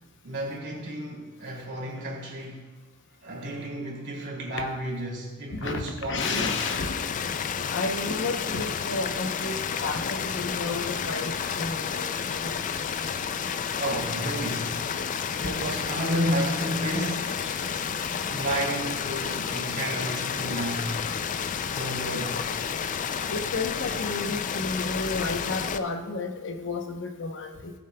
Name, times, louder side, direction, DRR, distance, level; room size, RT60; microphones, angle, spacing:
voice 1, 0.2-2.7 3.2-6.5 13.8-17.4 18.2-21.0 21.7-22.4, right 1 dB, 50° right, 2.6 m, -32 dB
voice 2, 5.5-7.0 7.7-12.6 23.3-27.7, left 3 dB, 55° left, 0.8 m, -32 dB
sound 1, 6.2-25.8, left 7 dB, 35° left, 0.3 m, -31 dB
16.0 x 7.1 x 2.2 m
head